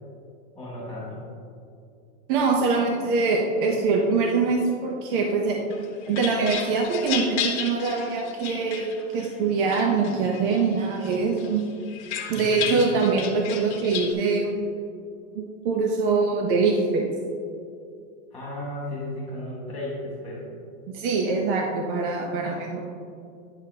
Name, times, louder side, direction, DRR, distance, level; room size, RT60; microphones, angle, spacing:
voice 1, 0.5-1.2 12.4-12.8 18.3-20.4, left 1 dB, 5° left, -8 dB, 1.9 m, -34 dB
voice 2, 2.3-5.6 6.1-11.6 12.3-14.6 15.3-17.1 20.9-22.8, right 4 dB, 45° right, 1 dB, 0.7 m, -24 dB
sound 1, 5.7-9.3 9.7-10.6 11.0-14.1, left 8 dB, 35° left, 1.0 m, -33 dB
9.8 x 7.2 x 2.8 m, 2.4 s
supercardioid pair, 155°, 39 cm